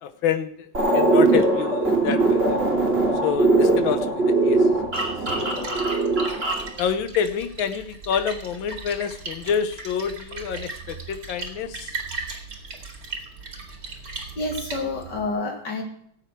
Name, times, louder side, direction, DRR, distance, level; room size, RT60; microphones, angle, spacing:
voice 1, 0.0-2.6 3.2-4.7 5.4-5.9 6.8-11.9, left 7 dB, 75° left, 10 dB, 1.7 m, -27 dB
sound 1, 0.7-6.7, right 2 dB, 30° right, 3.5 m, -21 dB
Splash splatter, 4.7-15.3, right 3 dB, 45° right, 2.6 m, -37 dB
voice 2, 14.4-15.8, left 2 dB, 55° left, 1 dB, 2.9 m, -28 dB
16.5 x 8.1 x 4.6 m, 0.65 s
omnidirectional pair, 2.2 m